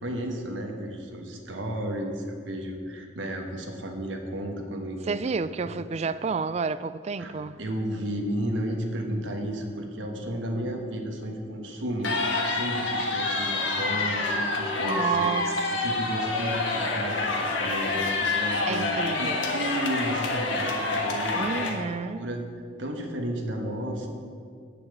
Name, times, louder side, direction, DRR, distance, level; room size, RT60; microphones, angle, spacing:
voice 1, 0.0-5.2 5.6-5.8 7.2-7.3 7.6-12.1 12.5-15.3 15.7-18.9 19.2-21.8 22.1-22.4 22.8-24.1, right 1 dB, 90° right, 1.3 m, -33 dB
voice 2, 5.1-7.6 14.8-15.5 18.7-19.4 21.3-22.2, right 5 dB, 35° right, 0.3 m, -30 dB
sound 1, 12.0-21.7, left 2 dB, 85° left, 1.6 m, -27 dB
8.4 x 7.3 x 8.1 m
head